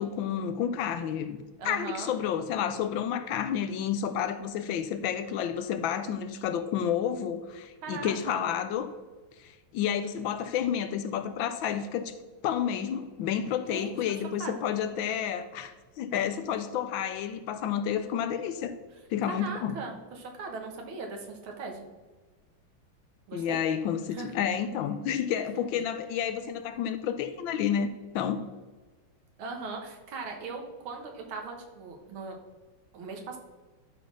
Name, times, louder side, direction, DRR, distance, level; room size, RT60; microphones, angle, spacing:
voice 1, 0.0-8.9 9.4-12.1 12.4-18.7 19.1-19.8 23.3-27.9 28.1-28.4, left 8 dB, 75° left, 11 dB, 1.3 m, -30 dB
voice 2, 1.6-2.1 7.8-8.4 13.7-13.9 14.4-14.6 19.3-21.9 23.3-23.6 24.1-24.3 29.4-32.4 32.9-33.4, right 4 dB, 80° right, 2 dB, 2.2 m, -39 dB
11.5 x 4.2 x 6.3 m, 1.3 s
omnidirectional pair, 2.3 m